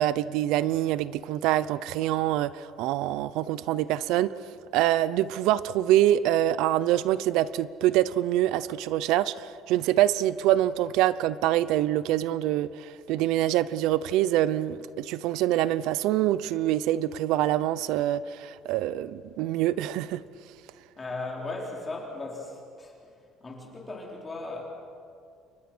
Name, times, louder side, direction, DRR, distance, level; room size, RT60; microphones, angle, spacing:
voice 1, 0.0-4.3 4.7-20.2, right 13 dB, 85° right, 17 dB, 0.7 m, -25 dB
voice 2, 21.0-22.9 23.4-24.6, left 2 dB, 20° left, -1 dB, 4.0 m, -37 dB
29.5 x 25.0 x 6.2 m, 2.4 s
cardioid pair, 160°, 0 cm